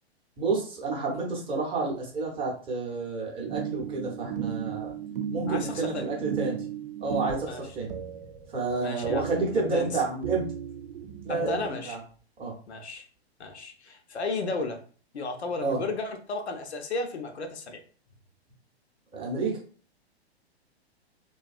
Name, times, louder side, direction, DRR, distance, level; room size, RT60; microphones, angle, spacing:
voice 1, 0.4-4.9 5.3-6.6 7.0-7.9 8.2-10.5 11.2-12.0 12.4-12.5 15.6-15.8 19.1-19.6, right 3 dB, 15° right, -2 dB, 0.6 m, -30 dB
sound 1, 3.5-11.7, right 8 dB, 60° right, 0.5 m, -36 dB
voice 2, 5.5-6.1 7.5-7.6 8.8-9.3 9.5-10.0 11.3-12.0 12.7-13.1 13.4-14.8 15.1-17.8, left 3 dB, 85° left, 5 dB, 0.6 m, -33 dB
2.6 x 2.2 x 2.4 m, 0.41 s
hypercardioid pair, 120°, 32 cm